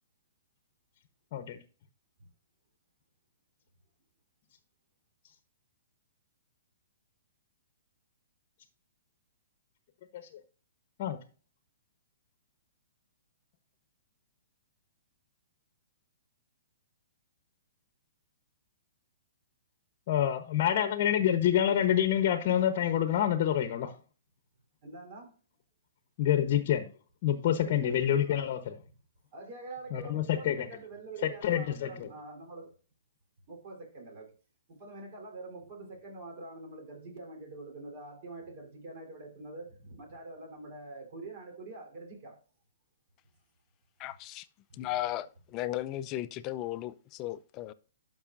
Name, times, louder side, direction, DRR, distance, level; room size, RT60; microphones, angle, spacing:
voice 1, 20.1-23.9 26.2-26.9 27.2-28.7 29.9-30.7 31.4-32.1, left 10 dB, 45° left, 0.9 m, -27 dB
voice 2, 24.8-25.3 27.6-28.6 29.3-32.7 33.5-34.3 34.7-42.4 44.8-44.9, right 2 dB, 50° right, 3.6 m, -45 dB
voice 3, 44.0-44.5 44.7-47.7, left 14 dB, 30° left, 0.5 m, -36 dB
12.0 x 5.5 x 2.6 m
hypercardioid pair, 135°, 0 cm